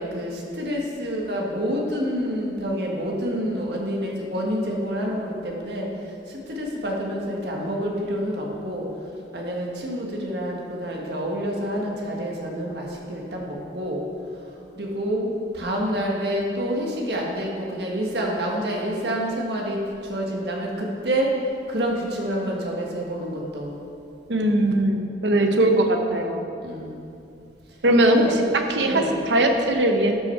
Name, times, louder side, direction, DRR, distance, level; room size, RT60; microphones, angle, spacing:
voice 1, 0.0-5.9 6.3-8.9 9.3-14.0 14.7-21.3 21.7-23.7 25.4-25.6 26.6-27.2 28.2-28.3 28.8-29.1, equal, 70° right, -1 dB, 1.6 m, -28 dB
voice 2, 24.3-26.5 27.8-28.4 28.7-30.2, right 1 dB, 85° right, 4 dB, 0.9 m, -20 dB
12.0 x 5.7 x 4.6 m, 2.6 s
head